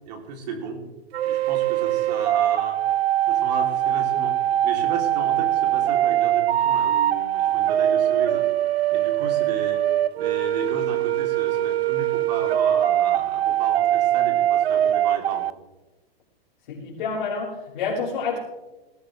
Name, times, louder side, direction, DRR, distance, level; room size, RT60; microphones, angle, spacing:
voice 1, 0.1-0.8 1.2-2.8 3.3-8.4 8.9-9.8 10.2-15.5, right 4 dB, 40° right, 3 dB, 3.1 m, -34 dB
sound 1, 1.1-15.5, right 12 dB, 80° right, 0.6 m, -22 dB
voice 2, 16.7-18.4, left 5 dB, 45° left, -7 dB, 5.0 m, -28 dB
19.5 x 15.5 x 3.3 m, 1.1 s
hypercardioid pair, 170°, 31 cm